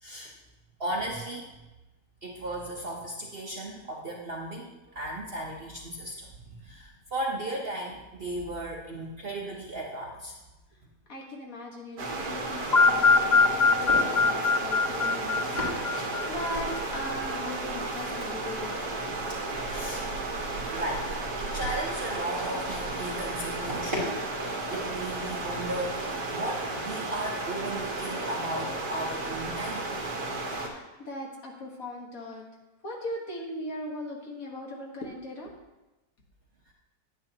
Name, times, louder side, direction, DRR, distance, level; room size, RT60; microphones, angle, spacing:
voice 1, 0.0-0.3 0.8-1.5 2.2-10.3 19.7-20.1 20.7-21.1 21.4-24.1 24.4-29.9, right 1 dB, 45° right, -2 dB, 0.9 m, -35 dB
voice 2, 11.1-18.9 30.6-32.4 32.8-35.5, left 1 dB, 55° left, -1 dB, 1.8 m, -39 dB
sound 1, 12.0-30.7, right 2 dB, 65° right, 1.6 m, -33 dB
sound 2, 12.7-16.7, left 4 dB, 40° left, 0.7 m, -23 dB
sound 3, 13.5-28.6, left 1 dB, 15° right, 3.0 m, -42 dB
9.8 x 9.7 x 2.8 m, 1.0 s
omnidirectional pair, 1.8 m